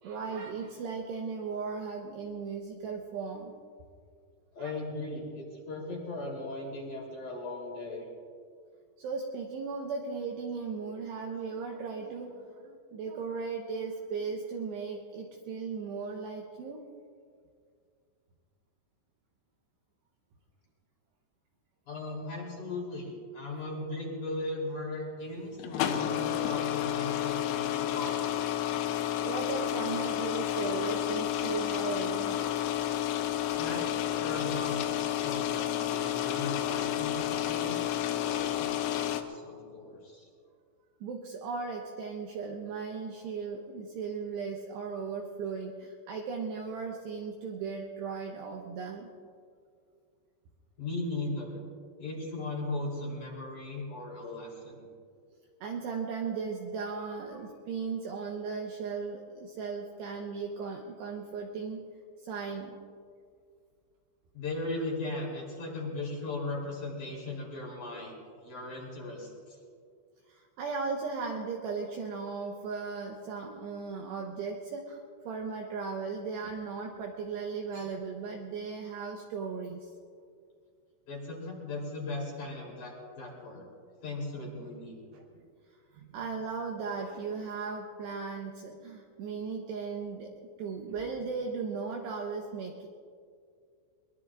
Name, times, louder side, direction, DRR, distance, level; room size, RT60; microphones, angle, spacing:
voice 1, 0.0-3.5 4.6-4.7 9.0-16.8 29.2-32.4 41.0-49.1 55.6-61.8 62.2-62.8 70.3-79.9 85.1-85.4 85.9-90.3 90.6-92.9, right 5 dB, 75° right, 1 dB, 2.6 m, -37 dB
voice 2, 4.5-8.1 21.9-28.3 33.6-40.3 50.8-51.6 52.0-54.9 64.3-68.2 68.4-69.6 81.1-83.7 84.0-85.0, left 2 dB, 45° left, -3 dB, 4.1 m, -38 dB
sound 1, 25.5-39.2, left 11 dB, 75° left, 2.9 m, -31 dB
23.0 x 22.5 x 2.5 m, 2.2 s
omnidirectional pair, 5.9 m